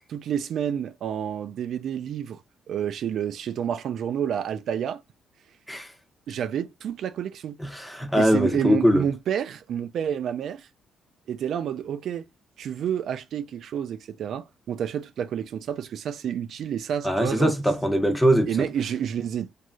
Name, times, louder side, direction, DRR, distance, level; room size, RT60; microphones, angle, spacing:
voice 1, 0.1-2.4 2.7-5.0 6.3-7.6 8.2-10.7 11.3-12.3 12.6-17.5 18.5-19.5, right 9 dB, 70° right, 0.3 m, -29 dB
voice 2, 7.6-9.0 17.0-18.7, equal, 5° left, 0.8 m, -22 dB
3.0 x 2.6 x 2.3 m
cardioid pair, 90°, 0 cm